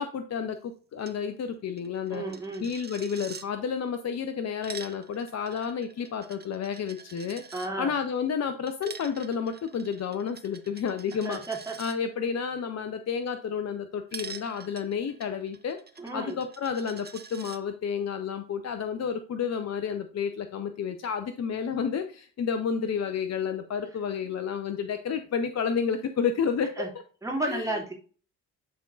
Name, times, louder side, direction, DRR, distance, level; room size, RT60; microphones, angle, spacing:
voice 1, 0.0-2.2 2.6-7.4 7.8-11.4 11.8-15.8 16.1-26.8 27.5-27.8, left 6 dB, 40° left, 8 dB, 0.7 m, -31 dB
Coin (dropping), 1.0-1.2 1.4-1.5 1.8-3.5 4.4-7.7 8.7-12.0 14.1-17.6, right 6 dB, 25° right, 0.8 m, -45 dB
voice 2, 2.1-2.7 7.5-7.9 11.2-11.8 16.0-16.4 26.8-26.9 27.2-27.9, right 2 dB, 5° right, 0 dB, 2.1 m, -32 dB
11.0 x 3.7 x 2.4 m, 0.40 s
figure-of-eight pair, 45°, 41 cm